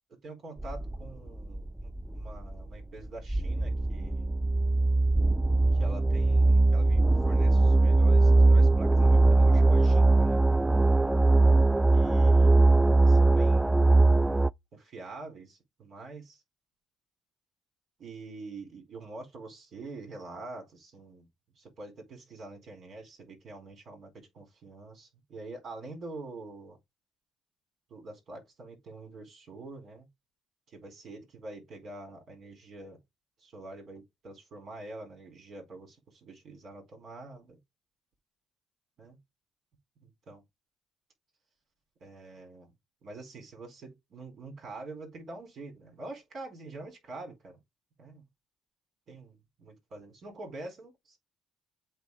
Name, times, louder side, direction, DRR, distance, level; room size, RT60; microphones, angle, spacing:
voice 1, 0.2-4.3 5.7-10.4 11.9-12.6 13.0-13.9 14.7-16.4 18.0-21.3 21.6-26.8 27.9-30.1 30.7-33.0 33.4-37.6 39.0-39.2 40.0-40.4 42.0-42.7 43.0-47.6 48.0-48.2 49.1-51.2, right 2 dB, 55° right, 4.3 m, -45 dB
sound 1, 0.6-14.5, right 2 dB, 10° right, 0.3 m, -21 dB
8.0 x 3.3 x 4.9 m
supercardioid pair, 85°, 0 cm